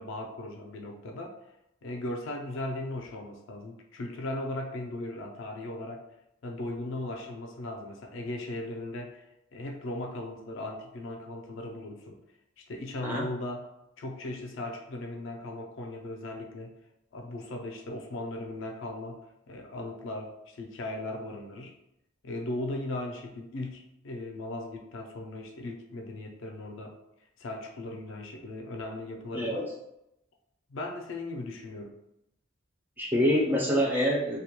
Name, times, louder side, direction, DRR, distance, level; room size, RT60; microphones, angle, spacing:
voice 1, 0.0-1.4 1.8-6.1 6.4-9.3 9.5-12.2 12.6-16.8 17.1-21.8 22.2-27.0 27.4-29.7 30.7-32.0, left 2 dB, 60° left, 2 dB, 0.4 m, -38 dB
voice 2, 33.0-34.4, equal, 10° right, -4 dB, 0.4 m, -26 dB
2.2 x 2.1 x 2.8 m, 0.85 s
head